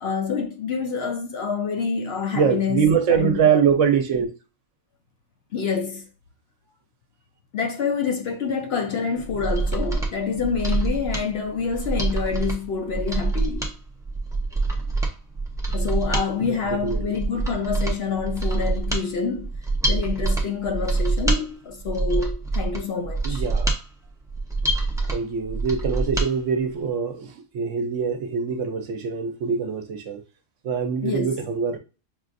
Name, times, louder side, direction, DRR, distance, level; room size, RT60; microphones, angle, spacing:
voice 1, 0.0-3.6 5.5-6.1 7.5-13.7 15.7-19.5 19.9-23.4 31.0-31.3, left 5 dB, 60° left, 0.8 m, -27 dB
voice 2, 2.3-4.3 16.4-17.2 23.2-23.7 25.0-30.2 30.6-31.8, right 6 dB, 70° right, 1.0 m, -24 dB
Mechanisms, 9.2-26.3 26.6-26.7, right 3 dB, 5° right, 0.5 m, -26 dB
5.7 x 2.5 x 2.5 m
omnidirectional pair, 1.4 m